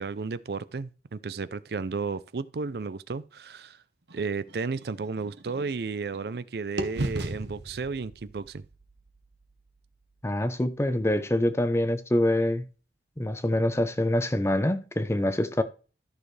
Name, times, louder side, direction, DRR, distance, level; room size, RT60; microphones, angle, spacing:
voice 1, 0.0-3.8 4.1-8.6, right 4 dB, 60° right, 0.5 m, -33 dB
sound 1, 4.1-6.4 6.8-10.7, right 1 dB, 75° right, 1.2 m, -38 dB
voice 2, 10.2-12.6 13.2-15.6, left 1 dB, 15° left, 0.7 m, -25 dB
13.5 x 6.4 x 3.3 m
head